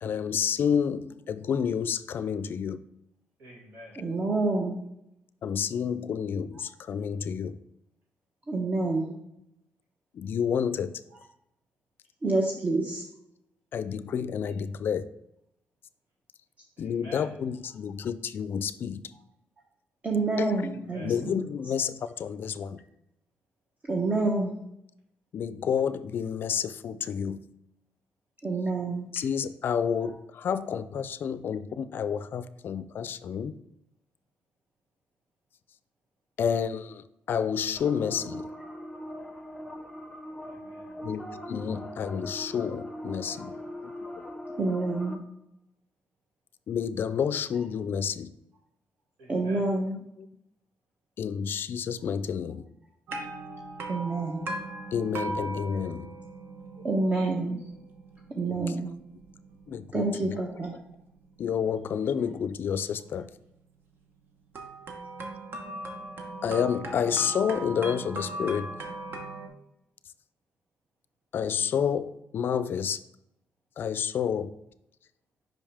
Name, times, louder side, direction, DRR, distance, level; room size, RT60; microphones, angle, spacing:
voice 1, 0.0-2.8 5.4-7.6 10.1-10.9 13.7-15.0 16.8-19.0 20.4-20.6 20.9-22.8 25.3-27.4 29.1-33.6 36.4-38.5 41.0-43.5 43.8-44.3 46.7-48.3 51.2-52.7 54.9-56.1 58.5-58.6 59.7-60.4 61.4-63.3 66.4-68.7 71.3-73.0 73.8-74.5, left 7 dB, 60° left, 14 dB, 0.3 m, -30 dB
voice 2, 3.4-4.0 16.8-17.2 20.9-21.1 40.5-41.0 43.2-43.9 49.2-49.7, right 1 dB, 90° right, -4 dB, 2.4 m, -48 dB
voice 3, 4.0-4.8 8.5-9.1 12.2-13.0 20.0-21.4 23.9-24.6 28.4-29.1 44.6-45.2 49.3-50.0 53.9-54.4 56.8-57.6 58.4-58.9 59.9-60.7, right 3 dB, 35° right, -1 dB, 0.9 m, -28 dB
sound 1, 37.8-45.2, equal, 5° left, 0.7 m, -40 dB
sound 2, 53.1-63.1 64.5-69.5, right 2 dB, 60° right, 1.0 m, -39 dB
5.4 x 5.2 x 3.4 m, 0.82 s
cardioid pair, 90°, 4 cm